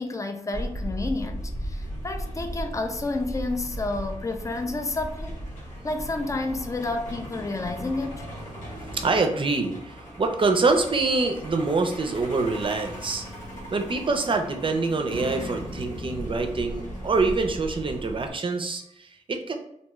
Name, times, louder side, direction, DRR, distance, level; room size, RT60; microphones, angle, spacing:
voice 1, 0.0-5.4 5.8-8.3, left 2 dB, 25° left, 6 dB, 0.4 m, -30 dB
Truck, 0.5-18.3, equal, 90° left, 0.9 m, -37 dB
voice 2, 8.9-13.3 13.7-19.5, right 3 dB, 40° right, 4 dB, 0.5 m, -25 dB
2.6 x 2.2 x 3.0 m, 0.79 s
cardioid pair, 60°, 13 cm